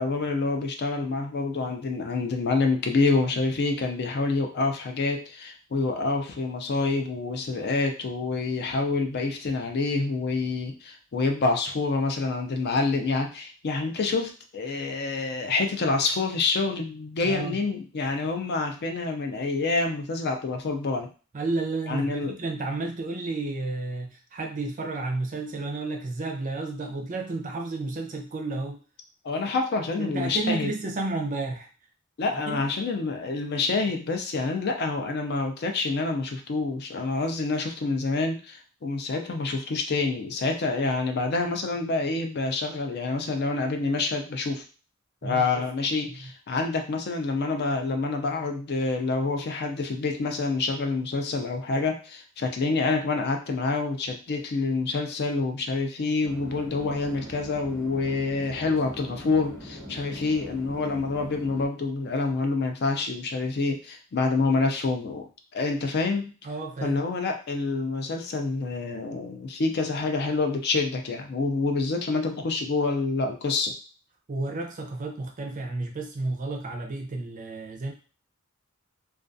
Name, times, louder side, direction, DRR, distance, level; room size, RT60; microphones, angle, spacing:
voice 1, 0.0-21.1 21.9-22.3 29.2-30.7 32.2-44.6 45.2-65.3 65.5-66.3 66.8-73.7, left 3 dB, 50° left, 4 dB, 0.4 m, -27 dB
voice 2, 17.2-17.6 21.3-28.8 30.0-31.7 32.5-32.6 45.2-45.6 46.1-46.3 66.4-67.0 74.3-77.9, right 3 dB, 40° right, 2 dB, 0.5 m, -32 dB
Chatter / Fixed-wing aircraft airplane, 56.2-61.7, equal, 15° left, 0.9 m, -42 dB
2.3 x 2.3 x 2.5 m, 0.36 s
head